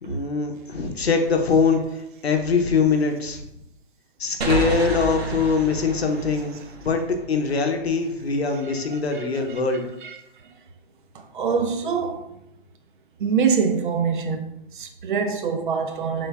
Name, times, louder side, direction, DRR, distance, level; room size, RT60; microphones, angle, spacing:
voice 1, 0.0-3.4 4.2-7.0 7.3-9.8, left 4 dB, 90° left, 0.7 m, -23 dB
sound 1, 4.4-7.9, right 2 dB, 85° right, 0.8 m, -30 dB
voice 2, 8.9-9.4 10.0-10.2 11.3-12.3 13.2-14.4 14.7-16.3, right 6 dB, 55° right, 0.5 m, -24 dB
3.8 x 2.1 x 3.4 m
figure-of-eight pair, 130°, 31 cm